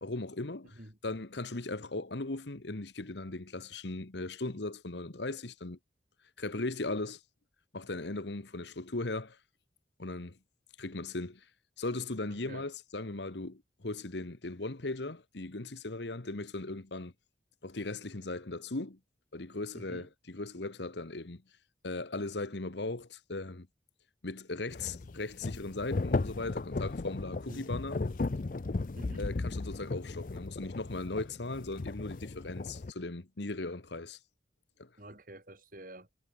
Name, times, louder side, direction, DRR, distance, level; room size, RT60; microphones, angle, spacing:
voice 1, 0.0-5.8 6.4-7.2 7.7-9.4 10.0-10.4 10.8-11.5 11.8-17.1 17.6-19.0 19.3-21.4 21.8-23.7 24.2-28.0 29.2-34.2 34.8-34.9, left 2 dB, 70° left, 1.4 m, -38 dB
voice 2, 12.3-12.7 19.7-20.1 27.3-27.7 29.0-29.3 35.0-36.1, right 1 dB, 45° right, 4.1 m, -48 dB
sound 1, 24.7-32.9, left 3 dB, 45° left, 0.5 m, -36 dB
head